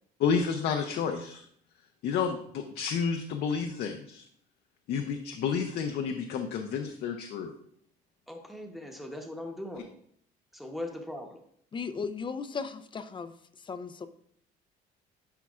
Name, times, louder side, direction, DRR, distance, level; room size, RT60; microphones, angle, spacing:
voice 1, 0.2-1.4 2.0-4.2 4.9-7.5, left 6 dB, 75° left, 3 dB, 0.7 m, -30 dB
voice 2, 8.3-9.9 10.5-11.4, left 1 dB, ahead, 2 dB, 1.0 m, -39 dB
voice 3, 11.7-13.3 13.6-14.1, left 5 dB, 30° left, 11 dB, 0.5 m, -36 dB
10.5 x 5.7 x 2.4 m, 0.66 s
cardioid pair, 110°, 17 cm